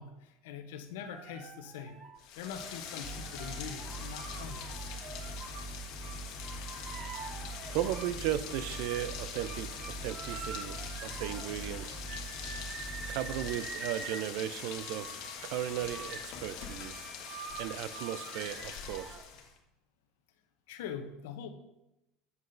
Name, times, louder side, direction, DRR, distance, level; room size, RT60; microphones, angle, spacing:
voice 1, 0.0-2.0 2.4-4.9 20.7-21.5, left 7 dB, 85° left, 7 dB, 0.7 m, -43 dB
sound 1, 1.0-5.7 6.0-8.1 8.5-19.3, right 5 dB, 45° right, 0.8 m, -46 dB
Rain, 2.2-19.6, left 7 dB, 65° left, 1.3 m, -44 dB
sound 2, 3.0-13.5, right 2 dB, 10° left, 2.6 m, -43 dB
voice 2, 7.7-9.7 10.0-12.0 13.1-15.1 15.4-17.0 17.6-19.2, right 12 dB, 70° right, 14 dB, 0.4 m, -36 dB
8.0 x 7.5 x 2.6 m, 0.91 s
supercardioid pair, 115°, 0 cm